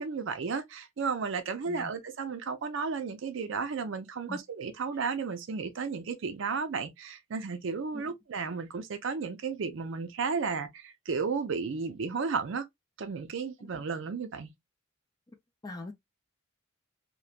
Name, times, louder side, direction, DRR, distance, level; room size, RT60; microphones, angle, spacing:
voice 1, 0.0-12.6 13.0-14.5, right 5 dB, 65° right, 0.5 m, -33 dB
voice 2, 1.7-1.9 4.3-4.4 7.9-8.0 13.6-13.7 15.6-15.9, left 2 dB, 20° left, 0.4 m, -41 dB
3.0 x 2.1 x 2.2 m
head